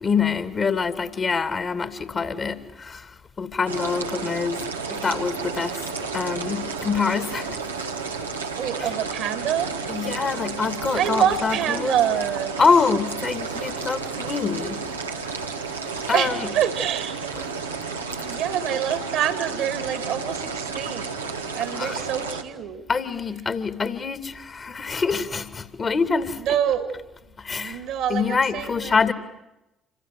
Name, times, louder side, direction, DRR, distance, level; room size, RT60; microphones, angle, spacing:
voice 1, 0.0-3.0 3.4-4.6 4.9-5.8 6.1-7.6 8.8-8.9 9.9-12.0 12.6-14.8 16.1-16.5 21.8-22.0 22.9-26.4 27.4-27.8 28.1-29.1, left 5 dB, 40° left, 2.6 m, -25 dB
sound 1, 3.7-22.4, right 5 dB, 85° right, 1.4 m, -32 dB
voice 2, 8.5-9.7 11.0-12.6 16.1-17.1 18.2-21.1 21.5-22.9 26.4-27.0 27.5-29.0, right 9 dB, 60° right, 2.4 m, -26 dB
28.0 x 25.0 x 7.7 m
figure-of-eight pair, 45°, 0 cm